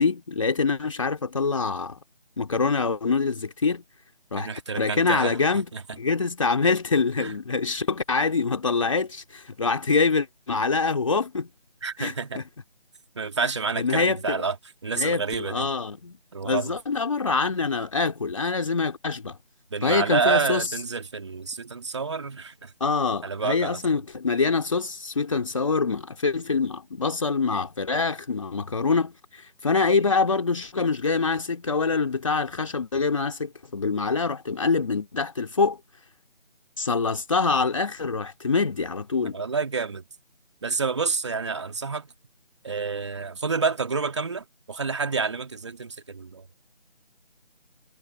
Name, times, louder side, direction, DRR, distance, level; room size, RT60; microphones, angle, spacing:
voice 1, 0.0-2.0 2.4-3.8 4.3-5.7 6.0-11.5 12.0-12.4 13.8-14.4 15.0-16.2 16.4-19.4 19.8-20.7 22.8-35.8 36.8-39.4, left 4 dB, 30° left, 2.6 m, -25 dB
voice 2, 4.4-5.4 5.7-5.8 7.2-7.4 11.8-12.4 13.1-14.6 14.8-15.7 16.3-16.7 19.7-22.7 23.2-24.0 39.3-40.0 40.6-42.1 42.6-46.7, right 5 dB, 25° right, 2.5 m, -28 dB
figure-of-eight pair, 165°, 33 cm